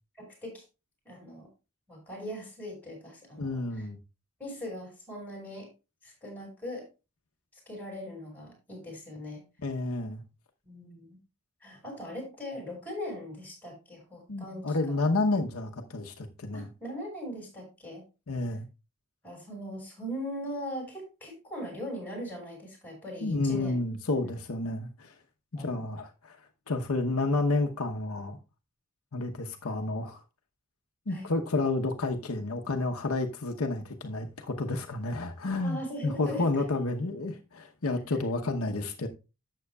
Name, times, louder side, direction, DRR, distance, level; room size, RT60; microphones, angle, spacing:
voice 1, 0.2-0.6 1.1-1.5 1.9-3.9 4.4-5.7 6.0-6.8 7.5-9.4 10.6-11.2 11.6-15.1 16.5-18.0 19.2-23.8 25.5-25.9 31.1-31.3 35.6-36.6, equal, 10° left, 5.5 m, -40 dB
voice 2, 3.4-4.0 9.6-10.2 14.3-16.7 18.3-18.7 23.2-25.1 25.5-26.4 26.7-28.4 29.1-30.2 31.1-39.1, left 2 dB, 75° left, 0.9 m, -30 dB
12.0 x 7.6 x 2.3 m
head